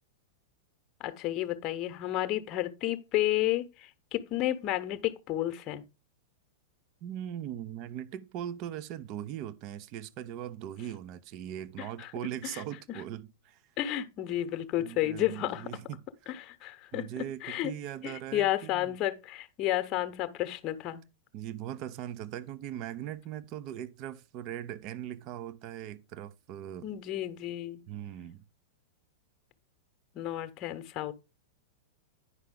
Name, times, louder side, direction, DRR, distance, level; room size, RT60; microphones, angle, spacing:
voice 1, 1.0-5.8 11.8-12.1 12.4-12.6 12.9-13.0 13.8-15.7 16.3-17.7 18.0-21.0 26.8-27.8 30.1-31.1, left 14 dB, 35° left, 1.0 m, -32 dB
voice 2, 7.0-13.6 14.8-16.0 16.9-19.0 21.3-26.9 27.9-28.4, right 11 dB, 40° right, 0.7 m, -40 dB
9.8 x 5.6 x 3.7 m
figure-of-eight pair, 95°, 0 cm